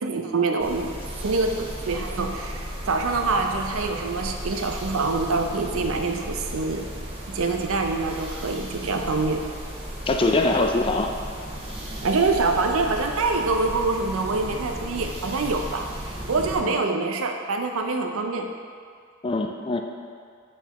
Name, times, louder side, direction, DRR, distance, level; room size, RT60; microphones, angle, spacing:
voice 1, 0.0-1.0 1.2-6.9 7.3-9.4 12.0-18.5, right 3 dB, 70° right, 4 dB, 0.5 m, -25 dB
sound 1, 0.6-16.6, equal, 25° right, 0.9 m, -35 dB
voice 2, 10.1-11.1 16.6-16.8 19.2-19.8, left 2 dB, 25° left, 3 dB, 0.3 m, -23 dB
7.9 x 4.4 x 3.0 m, 2.2 s
head